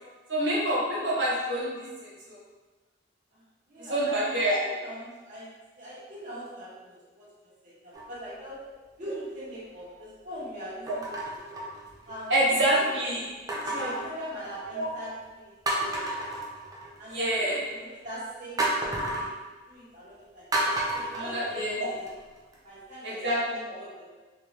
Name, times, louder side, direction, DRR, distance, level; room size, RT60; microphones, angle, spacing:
voice 1, 0.3-2.4 3.9-4.6 10.9-11.0 12.3-13.3 13.6-13.9 14.7-14.9 17.1-17.6 21.1-21.9 23.0-23.8, right 1 dB, 85° right, -7 dB, 1.3 m, -27 dB
voice 2, 3.7-8.6 9.0-11.4 12.1-12.8 13.6-16.4 17.0-19.3 19.7-20.5 20.9-22.1 22.6-24.0, equal, 45° right, -9 dB, 1.3 m, -42 dB
sound 1, 7.9-8.4 9.1-9.2 10.9-12.3 13.5-14.8 15.3-15.4 15.7-17.1 18.6-19.3 20.5-22.1 22.5-22.6, right 1 dB, 20° right, 0.5 m, -31 dB
3.4 x 2.8 x 3.2 m, 1.3 s
head